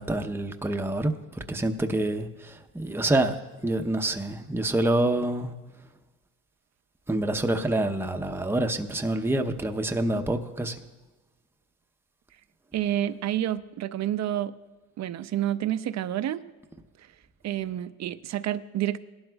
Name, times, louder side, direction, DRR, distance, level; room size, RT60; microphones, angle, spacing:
voice 1, 0.0-3.4 3.6-5.5 7.1-10.8, right 1 dB, 10° right, 5 dB, 0.7 m, -27 dB
voice 2, 12.7-14.5 15.0-16.4 17.4-19.0, right 12 dB, 65° right, 13 dB, 0.6 m, -29 dB
18.5 x 12.0 x 2.3 m, 1.2 s
cardioid pair, 90°, 30 cm